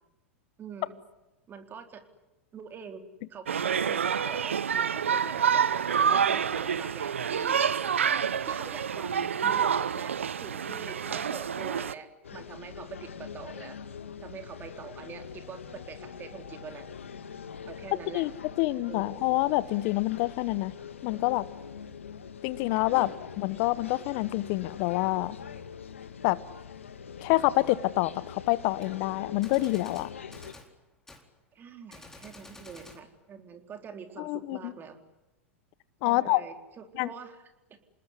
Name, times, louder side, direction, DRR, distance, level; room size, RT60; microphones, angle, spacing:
voice 1, 0.6-1.0 1.5-2.0 2.5-3.0 3.3-7.6 8.4-13.8 14.2-16.9 17.6-18.3 18.9-19.3 22.9-23.1 31.5-35.0 36.0-37.4 37.7-37.8, right 6 dB, 30° right, 6 dB, 4.1 m, -44 dB
sound 1, 3.5-11.9, right 7 dB, 85° right, 0.9 m, -27 dB
sound 2, 12.2-30.5, left 7 dB, 85° left, 2.0 m, -44 dB
voice 2, 18.6-20.7 21.0-21.5 22.4-23.1 23.4-25.4 26.2-26.4 27.2-30.1 34.2-34.7 36.0-36.4 37.0-37.1, left 19 dB, 55° left, 17 dB, 1.0 m, -27 dB
Gunshot gunfire, 28.8-28.9 29.4-30.7 31.1-31.3 31.9-33.0, left 2 dB, 5° left, 4.3 m, -50 dB
28.0 x 20.0 x 9.8 m, 1.0 s
hypercardioid pair, 95°, 7 cm